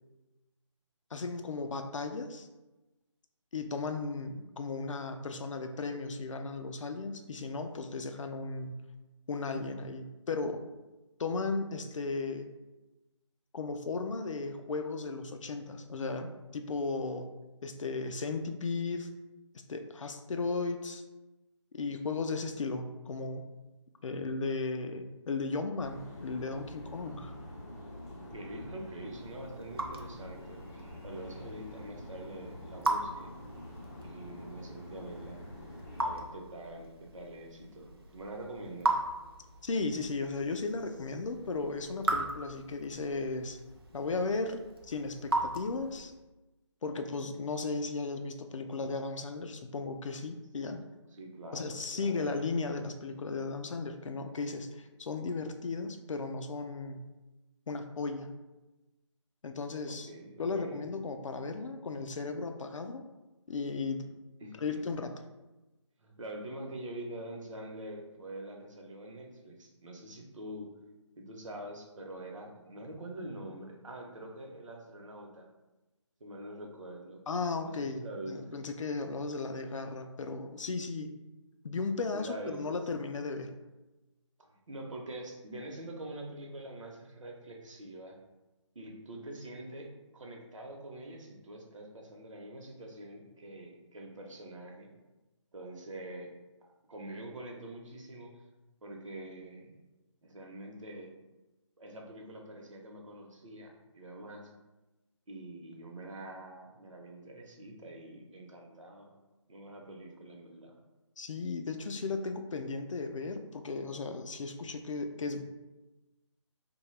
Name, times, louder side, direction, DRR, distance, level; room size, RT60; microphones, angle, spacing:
voice 1, 1.1-2.5 3.5-8.8 9.3-10.6 11.2-12.5 13.5-17.3 17.6-19.1 19.7-21.0 21.7-23.5 24.0-27.3 39.6-43.6 43.9-46.1 46.8-50.8 51.5-57.1 57.7-58.4 59.4-60.1 60.4-63.0 63.5-64.1 64.6-65.1 77.3-81.1 81.6-83.5 111.2-115.4, left 3 dB, 80° left, 6 dB, 0.4 m, -35 dB
sound 1, 25.8-36.2, left 1 dB, 35° left, 0.6 m, -46 dB
voice 2, 28.1-33.3 34.0-35.5 36.0-39.0 51.1-52.3 59.9-60.9 64.4-64.6 66.0-70.7 71.2-75.5 76.2-77.3 77.6-78.6 82.1-82.7 84.5-88.2 88.7-94.9 95.5-96.3 96.9-98.3 98.8-99.7 100.2-101.1 101.8-104.5 105.3-109.1 109.5-110.7, right 1 dB, 75° right, 1 dB, 0.7 m, -45 dB
Raindrop / Drip, 29.0-46.2, right 2 dB, 50° right, 0.4 m, -39 dB
2.7 x 2.2 x 3.1 m, 1.1 s
hypercardioid pair, 175°, 16 cm